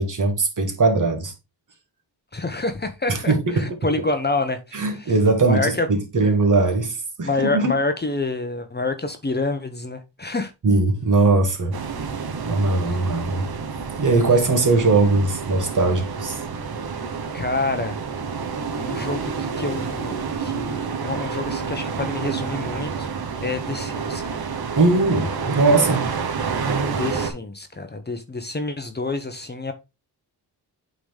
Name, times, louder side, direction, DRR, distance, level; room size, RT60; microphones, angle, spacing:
voice 1, 0.0-1.3 3.1-3.7 4.7-7.8 10.6-11.8 12.4-13.5 14.0-16.4 24.8-26.1 26.6-27.0, right 3 dB, 50° right, 1.9 m, -20 dB
voice 2, 2.3-5.0 5.5-5.9 7.2-10.5 17.3-17.9 18.8-23.1 23.4-24.4 26.8-29.7, left 3 dB, 25° left, 1.0 m, -27 dB
sound 1, 11.7-27.3, right 5 dB, 65° right, 1.2 m, -29 dB
8.4 x 4.0 x 3.4 m
wide cardioid pair, 100°, 41 cm